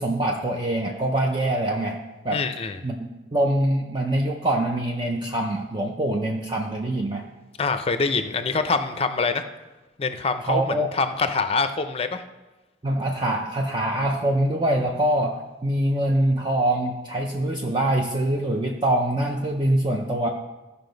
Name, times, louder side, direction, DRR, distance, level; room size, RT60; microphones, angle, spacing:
voice 1, 0.0-2.0 2.2-2.4 2.8-7.2 10.5-10.9 12.8-20.3, right 1 dB, 25° right, 0 dB, 0.6 m, -24 dB
voice 2, 2.3-2.8 7.6-9.4 10.0-12.2, left 4 dB, 30° left, 9 dB, 0.5 m, -25 dB
15.0 x 5.5 x 3.9 m, 1.1 s
head